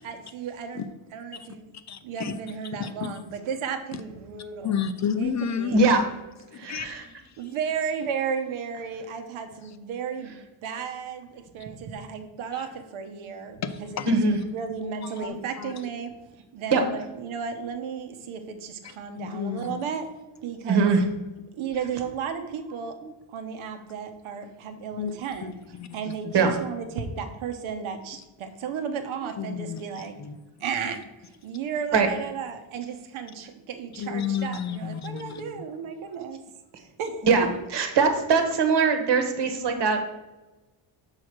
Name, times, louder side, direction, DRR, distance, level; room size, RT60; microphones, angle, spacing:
voice 1, 0.0-1.7 2.0-4.7 5.2-5.8 7.4-10.3 10.6-16.1 16.5-20.1 20.4-20.9 21.6-23.0 23.3-25.5 25.9-30.1 30.6-36.4 36.8-37.2, right 6 dB, 70° right, 1.2 m, -34 dB
voice 2, 1.9-2.4 2.8-3.2 3.9-4.0 4.6-5.8 6.6-7.5 12.5-12.7 13.6-14.1 15.0-15.7 18.8-19.8 25.0-26.3 29.4-29.8 30.2-30.4 34.0-35.6, left 7 dB, 35° left, 0.4 m, -32 dB
voice 3, 6.6-7.0 14.1-14.4 16.7-16.8 20.6-21.0 26.3-26.5 31.9-32.1 37.2-37.5 37.7-40.0, right 4 dB, 55° right, 1.4 m, -21 dB
6.3 x 4.9 x 6.0 m
cardioid pair, 135°, 50 cm